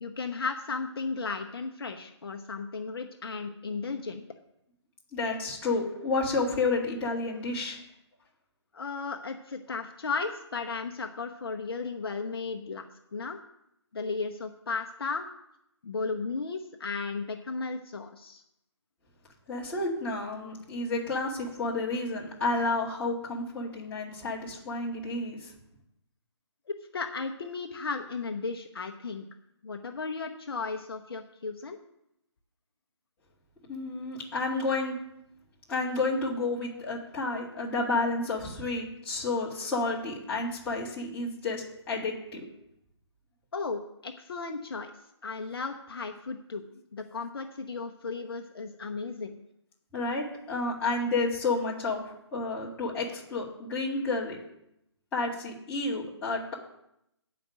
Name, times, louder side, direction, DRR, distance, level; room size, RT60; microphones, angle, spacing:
voice 1, 0.0-4.2 8.7-13.4 13.9-15.3 15.8-18.4 26.7-29.2 29.6-31.8 43.5-44.9 45.2-46.6 46.9-49.3, left 4 dB, 55° left, 4 dB, 1.0 m, -35 dB
voice 2, 5.1-7.8 19.5-25.5 33.7-35.0 35.7-42.5 49.9-54.4 55.1-56.5, left 3 dB, 10° left, -7 dB, 2.2 m, -30 dB
9.1 x 5.2 x 7.5 m, 0.80 s
figure-of-eight pair, 155°, 15 cm